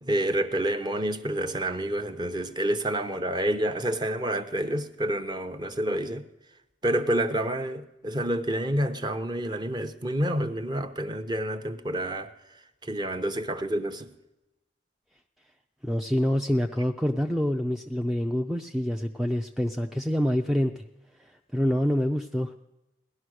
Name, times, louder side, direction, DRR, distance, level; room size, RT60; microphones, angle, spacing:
voice 1, 0.0-6.3 6.8-12.3 12.8-14.1, right 1 dB, 25° right, 0.8 m, -28 dB
voice 2, 15.8-20.8 21.5-22.5, equal, ahead, 0.4 m, -26 dB
17.5 x 11.5 x 6.4 m
head